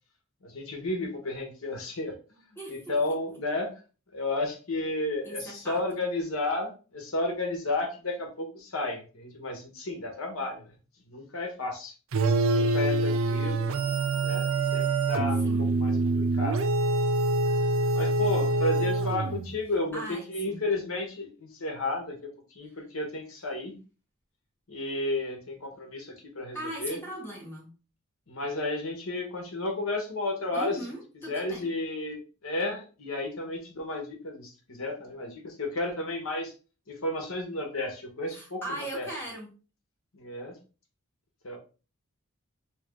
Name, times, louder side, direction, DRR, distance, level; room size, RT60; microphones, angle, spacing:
voice 1, 0.4-2.1 2.7-3.7 4.1-10.7 11.1-11.9 12.4-13.8 14.2-16.6 17.9-22.3 22.5-23.8 24.7-27.0 28.3-30.8 31.3-36.5 36.9-39.1 40.1-40.6 41.4-41.6, left 2 dB, 70° left, 2 dB, 1.2 m, -32 dB
voice 2, 2.6-2.9 5.2-5.8 15.4-15.6 19.9-20.6 26.5-27.7 30.5-31.7 38.3-39.5, right 1 dB, 10° left, -3 dB, 1.4 m, -38 dB
sound 1, 12.1-19.6, right 2 dB, 65° right, 0.5 m, -25 dB
3.5 x 3.1 x 3.5 m, 0.35 s
head